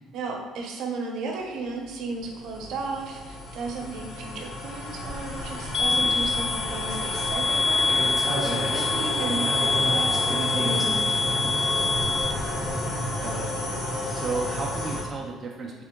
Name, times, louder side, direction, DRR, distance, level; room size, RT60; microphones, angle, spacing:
voice 1, 0.1-11.6, right 3 dB, 65° right, 1 dB, 0.8 m, -34 dB
sound 1, 1.5-15.0, left 1 dB, 60° left, 1.0 m, -31 dB
sound 2, 4.9-12.7, equal, 5° left, 1.3 m, -37 dB
sound 3, 5.7-12.3, left 3 dB, 40° left, 0.4 m, -25 dB
voice 2, 13.2-13.5 14.1-15.7, right 3 dB, 30° right, -2 dB, 0.5 m, -33 dB
3.7 x 3.6 x 3.6 m, 1.3 s
cardioid pair, 130°, 0 cm